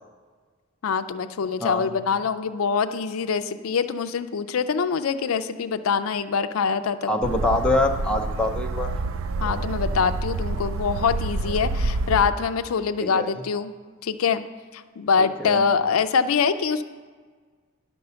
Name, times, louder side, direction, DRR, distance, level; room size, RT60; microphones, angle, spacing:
voice 1, 0.8-7.1 9.4-13.7 14.0-14.4 14.7-16.8, left 6 dB, 80° left, 10 dB, 0.4 m, -24 dB
voice 2, 1.6-1.9 7.1-8.9 13.0-13.3 15.2-15.7, left 2 dB, 5° left, 0 dB, 0.7 m, -25 dB
sound 1, 7.2-12.3, right 2 dB, 65° right, 0.4 m, -28 dB
10.5 x 5.3 x 6.8 m, 1.5 s
head